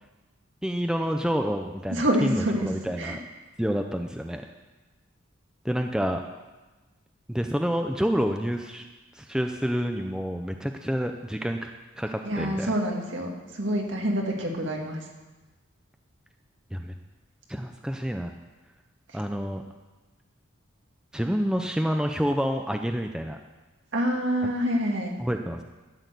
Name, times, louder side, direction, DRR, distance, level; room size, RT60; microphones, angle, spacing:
voice 1, 0.6-3.2 3.6-4.4 5.6-6.2 7.3-8.9 9.2-11.7 12.0-12.7 16.7-16.9 17.5-18.3 19.1-19.6 21.1-23.4 24.4-24.5 25.2-25.6, equal, 5° right, 4 dB, 0.5 m, -28 dB
voice 2, 1.9-2.7 3.0-3.2 12.2-15.0 23.9-25.1, equal, 60° right, 0 dB, 2.2 m, -26 dB
13.0 x 6.4 x 8.2 m, 1.2 s
head